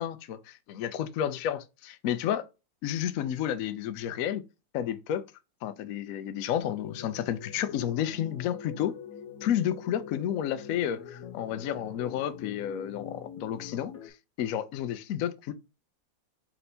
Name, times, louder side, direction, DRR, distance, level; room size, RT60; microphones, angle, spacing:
voice 1, 0.0-2.4 2.8-4.4 4.7-5.2 5.6-8.9 9.4-15.5, left 10 dB, 75° left, 0.8 m, -31 dB
sound 1, 6.6-14.1, left 7 dB, 55° left, 1.2 m, -44 dB
4.3 x 2.7 x 4.2 m
omnidirectional pair, 2.0 m